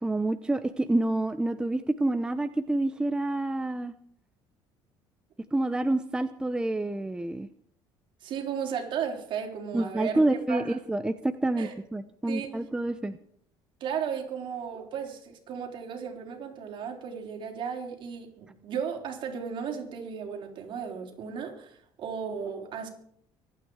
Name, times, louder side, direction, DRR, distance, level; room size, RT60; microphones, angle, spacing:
voice 1, 0.0-3.9 5.5-7.5 9.7-13.2, right 2 dB, 10° right, 10 dB, 0.7 m, -28 dB
voice 2, 8.2-10.2 10.5-10.8 11.6-11.7 12.3-12.5 13.8-22.9, right 7 dB, 55° right, 2 dB, 4.2 m, -35 dB
24.5 x 9.2 x 4.9 m, 0.66 s
cardioid pair, 125°, 10 cm